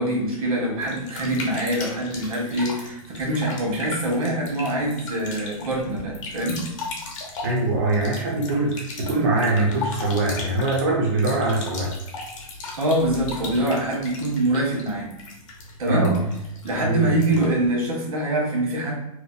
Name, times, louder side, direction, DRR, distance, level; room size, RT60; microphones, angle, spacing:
voice 1, 0.0-6.6 12.8-15.1 15.8-16.2 16.6-19.0, right 1 dB, 75° right, -1 dB, 1.0 m, -24 dB
sound 1, 0.8-17.6, left 3 dB, 55° left, 0.7 m, -37 dB
voice 2, 7.4-11.9 15.9-16.2 16.8-17.1, right 2 dB, 30° right, -3 dB, 0.4 m, -23 dB
2.6 x 2.2 x 2.2 m, 0.85 s
supercardioid pair, 175°, 19 cm